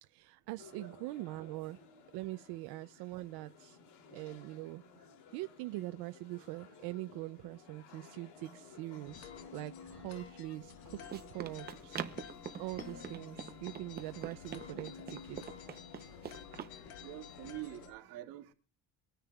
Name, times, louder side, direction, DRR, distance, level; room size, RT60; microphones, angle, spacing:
voice 1, 0.0-1.8 2.1-3.8 4.1-15.5, right 19 dB, 85° right, 0.6 m, -43 dB
sound 1, 0.6-17.9, left 5 dB, 85° left, 2.9 m, -57 dB
voice 2, 0.7-1.0 8.4-8.6 16.5-16.7 17.0-18.5, right 15 dB, 70° right, 2.2 m, -47 dB
sound 2, 9.0-17.9, left 8 dB, 65° left, 1.5 m, -51 dB
Run, 10.6-16.8, right 8 dB, 25° right, 0.7 m, -45 dB
24.5 x 10.0 x 2.3 m
cardioid pair, 180°, 38 cm